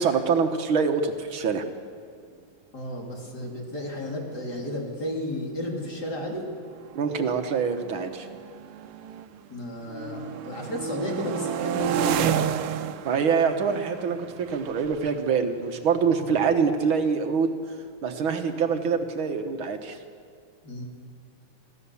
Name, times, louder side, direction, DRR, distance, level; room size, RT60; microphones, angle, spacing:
voice 1, 0.0-1.6 7.0-8.3 13.1-17.5 18.0-20.0, right 6 dB, 70° right, 7 dB, 2.0 m, -25 dB
voice 2, 2.7-6.4 9.5-12.5 20.6-20.8, left 1 dB, 50° left, -1 dB, 3.8 m, -33 dB
sound 1, 4.1-4.2 4.4-4.8 5.5-9.5 9.8-16.5, right 9 dB, 90° right, 1.7 m, -32 dB
26.5 x 15.5 x 7.1 m, 2.2 s
omnidirectional pair, 2.3 m